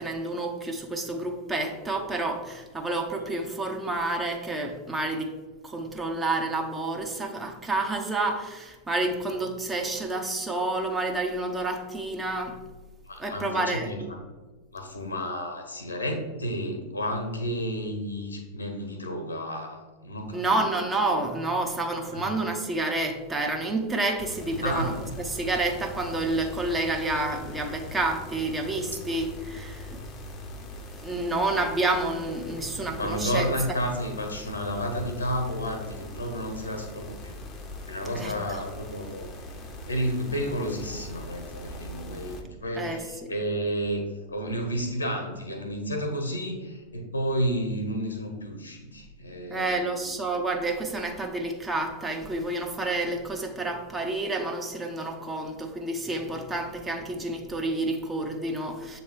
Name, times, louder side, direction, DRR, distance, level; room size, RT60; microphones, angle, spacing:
voice 1, 0.0-5.3 5.6-12.6 13.2-13.9 20.3-24.9 25.3-30.1 31.0-33.5 38.1-38.3 42.8-43.3 49.5-59.0, right 2 dB, 15° right, 0.8 m, -29 dB
voice 2, 13.0-14.2 14.7-20.5 22.1-22.3 24.6-24.9 32.6-37.4 37.9-39.3 39.9-50.0, equal, 80° left, 1.1 m, -31 dB
sound 1, 24.2-42.4, left 1 dB, 30° left, 0.7 m, -41 dB
7.2 x 3.1 x 4.6 m
figure-of-eight pair, 90°, 0 cm